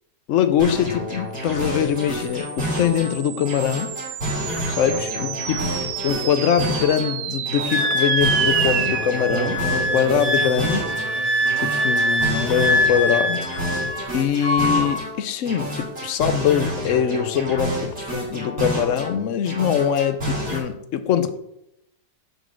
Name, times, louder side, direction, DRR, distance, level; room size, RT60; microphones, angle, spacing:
voice 1, 0.3-4.0 4.7-5.6 6.0-10.9 11.6-13.8 14.1-21.4, left 8 dB, 65° left, 10 dB, 0.8 m, -23 dB
sound 1, 0.6-3.1 3.5-7.1 7.5-11.1 11.5-15.1 15.5-19.1 19.5-20.6, equal, 35° right, 3.1 m, -29 dB
sound 2, 1.9-12.5, right 10 dB, 90° right, 1.4 m, -30 dB
Wind instrument woodwind instrument, 7.7-14.1 14.4-15.0, left 1 dB, 5° right, 3.1 m, -23 dB
6.6 x 5.2 x 6.2 m, 0.79 s
omnidirectional pair, 1.9 m